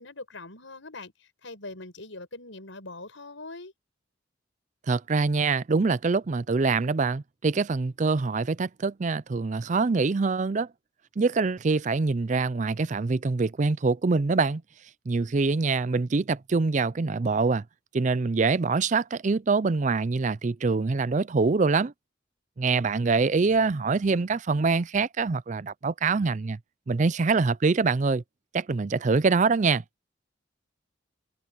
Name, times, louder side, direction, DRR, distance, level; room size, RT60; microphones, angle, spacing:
voice 1, 0.0-3.7, left 2 dB, 90° left, 6.2 m, -42 dB
voice 2, 4.9-10.7 11.2-14.6 15.1-17.6 17.9-21.9 22.6-26.6 26.9-28.2 28.5-29.8, right 4 dB, 40° right, 0.5 m, -24 dB
head